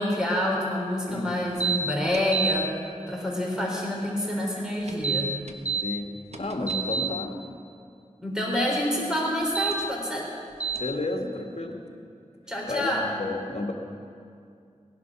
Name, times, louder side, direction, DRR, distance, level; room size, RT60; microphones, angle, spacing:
voice 1, 0.0-2.8 3.1-5.4 8.2-10.3 12.5-13.0, left 1 dB, 5° right, -3 dB, 4.0 m, -27 dB
voice 2, 1.1-1.4 5.8-7.4 10.8-11.9 12.7-13.7, left 2 dB, 55° left, 2 dB, 1.9 m, -32 dB
sound 1, 1.6-1.8 2.1-2.6 4.9-5.8 6.3-7.1 9.4-9.7 10.6-10.8, right 6 dB, 60° right, 1.3 m, -27 dB
18.0 x 11.0 x 6.1 m, 2.4 s
wide cardioid pair, 55°, 13 cm